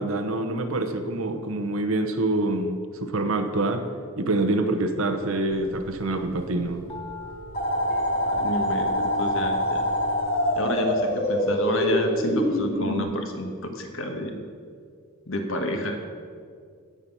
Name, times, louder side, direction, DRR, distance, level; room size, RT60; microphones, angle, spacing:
voice 1, 0.0-3.9 4.2-6.8, right 2 dB, 70° right, 7 dB, 1.0 m, -26 dB
sound 1, 5.5-10.5, left 2 dB, 25° left, 2.0 m, -40 dB
sound 2, 7.5-13.0, left 1 dB, 45° left, 3.1 m, -25 dB
voice 2, 8.2-9.9 10.6-14.5 15.3-16.0, equal, 65° left, 4 dB, 1.3 m, -29 dB
17.0 x 5.7 x 6.2 m, 2.1 s
head